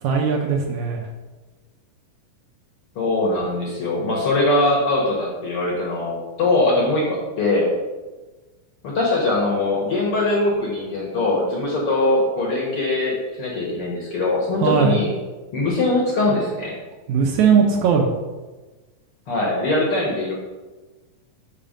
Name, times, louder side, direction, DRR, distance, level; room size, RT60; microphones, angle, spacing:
voice 1, 0.0-1.1 14.6-15.0 17.1-18.1, right 6 dB, 75° right, 1 dB, 1.9 m, -19 dB
voice 2, 2.9-7.7 8.8-15.1 15.5-16.7 19.3-20.3, left 2 dB, 55° left, -3 dB, 1.7 m, -21 dB
5.9 x 5.7 x 5.1 m, 1.2 s
omnidirectional pair, 3.8 m